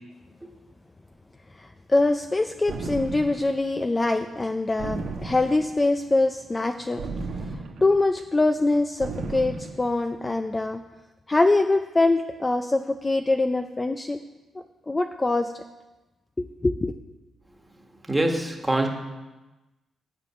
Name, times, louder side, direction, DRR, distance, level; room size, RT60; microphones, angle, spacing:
voice 1, 1.6-7.0 7.8-10.8 11.3-14.2 14.9-15.5 16.4-17.0, left 2 dB, 20° left, 7 dB, 0.4 m, -23 dB
sound 1, 2.7-3.6 4.8-5.8 7.0-8.0 9.0-9.9, right 3 dB, 85° right, 1.4 m, -34 dB
voice 2, 18.1-18.9, right 1 dB, 10° right, 2 dB, 1.5 m, -24 dB
9.8 x 7.7 x 6.1 m, 1.1 s
cardioid pair, 120°, 0 cm